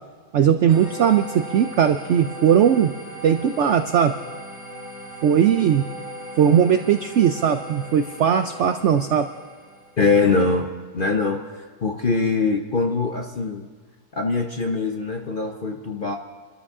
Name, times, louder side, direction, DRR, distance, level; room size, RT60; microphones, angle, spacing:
voice 1, 0.3-2.9 3.2-4.1 5.2-5.9 6.4-9.3, right 8 dB, 75° right, 9 dB, 0.6 m, -18 dB
sound 1, 0.7-10.0, equal, 35° right, 4.4 m, -38 dB
voice 2, 10.0-11.4 11.8-13.7 14.1-16.1, left 4 dB, 50° left, 3 dB, 0.6 m, -22 dB
27.0 x 13.5 x 3.7 m, 1.5 s
omnidirectional pair, 1.9 m